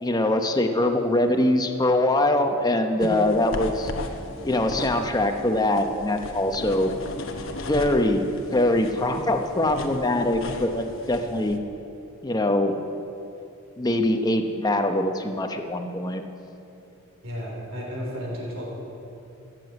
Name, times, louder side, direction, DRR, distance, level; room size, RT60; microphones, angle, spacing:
voice 1, 0.0-3.9 4.4-6.9 7.7-8.2 8.5-11.6 12.2-12.8 13.8-16.2, left 1 dB, 20° left, 5 dB, 0.8 m, -23 dB
sound 1, 3.0-11.6, left 2 dB, 65° left, 1.0 m, -37 dB
voice 2, 3.0-3.3 17.2-18.7, equal, 70° right, -2 dB, 3.6 m, -32 dB
14.5 x 7.7 x 7.9 m, 2.8 s
head